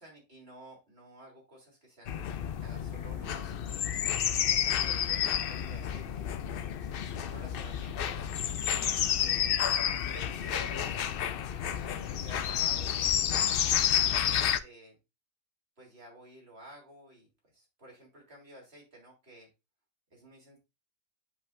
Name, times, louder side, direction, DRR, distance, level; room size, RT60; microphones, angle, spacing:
voice 1, 0.0-3.8 4.4-6.3 7.0-8.3 8.6-9.6 10.0-10.8 11.8-13.2 14.0-15.0 15.8-17.3 17.5-19.5 20.1-20.6, right 1 dB, 40° right, -1 dB, 3.7 m, -52 dB
sound 1, 2.1-14.6, left 9 dB, 80° left, 0.5 m, -30 dB
10.0 x 5.4 x 2.6 m, 0.25 s
omnidirectional pair, 1.6 m